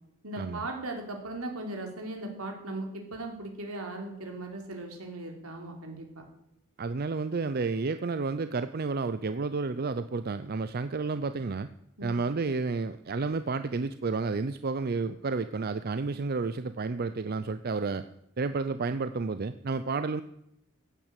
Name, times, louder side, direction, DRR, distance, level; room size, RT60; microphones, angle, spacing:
voice 1, 0.2-6.2 12.0-12.2, right 2 dB, 75° right, 2 dB, 3.7 m, -38 dB
voice 2, 6.8-11.7 12.0-18.1 18.4-20.2, right 4 dB, 45° right, 12 dB, 0.5 m, -31 dB
15.5 x 9.2 x 8.2 m, 0.80 s
head